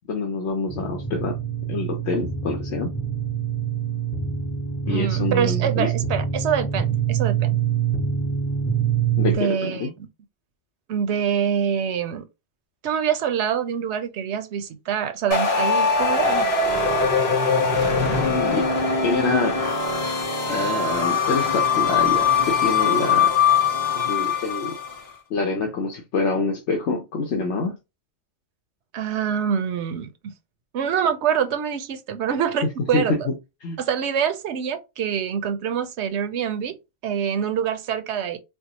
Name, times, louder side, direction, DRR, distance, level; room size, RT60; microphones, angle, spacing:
voice 1, 0.1-1.4 1.7-2.9 4.9-5.9 9.2-9.9 18.0-18.7 19.0-19.6 20.5-23.3 24.0-24.8 25.3-27.7 32.9-33.3 33.6-33.8, left 3 dB, 85° left, 1.0 m, -26 dB
sound 1, 0.7-9.4, right 8 dB, 15° left, 0.5 m, -25 dB
voice 2, 4.9-7.6 9.2-9.9 10.9-12.3 12.8-16.5 28.9-30.3 30.7-33.2 33.8-36.7 37.0-38.4, right 8 dB, 85° right, 0.9 m, -25 dB
sound 2, 15.3-24.9, left 5 dB, 65° left, 1.4 m, -21 dB
4.6 x 2.1 x 2.8 m
omnidirectional pair, 1.1 m